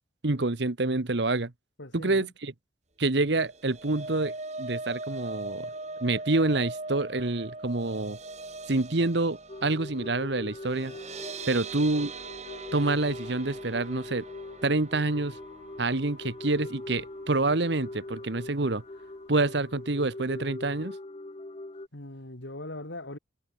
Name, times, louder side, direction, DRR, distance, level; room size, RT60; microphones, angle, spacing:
voice 1, 0.2-1.5 1.9-2.5 3.0-5.7 6.0-8.2 8.7-10.9 11.5-12.1 12.7-14.3 14.6-15.4 15.8-18.8 19.3-21.0, right 2 dB, 65° right, 1.2 m, -27 dB
voice 2, 1.8-2.3 21.9-23.2, left 1 dB, 75° left, 3.3 m, -40 dB
sound 1, 3.3-17.5 17.9-18.1 18.4-18.5, right 3 dB, 35° right, 3.1 m, -41 dB
sound 2, 9.5-21.9, left 2 dB, 30° left, 0.7 m, -42 dB
head